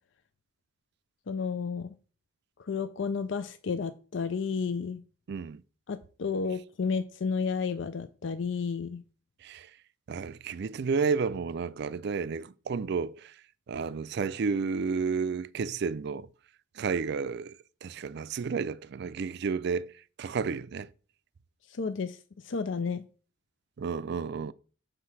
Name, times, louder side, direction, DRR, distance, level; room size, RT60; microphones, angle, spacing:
voice 1, 1.3-1.9 2.6-5.0 5.9-9.0 21.7-22.2 22.4-23.0, left 5 dB, 65° left, 0.5 m, -31 dB
voice 2, 5.3-5.6 9.4-9.7 10.1-13.4 13.7-16.3 16.7-17.6 17.8-20.9 23.8-24.5, right 5 dB, 60° right, 0.4 m, -31 dB
7.6 x 3.5 x 5.8 m
head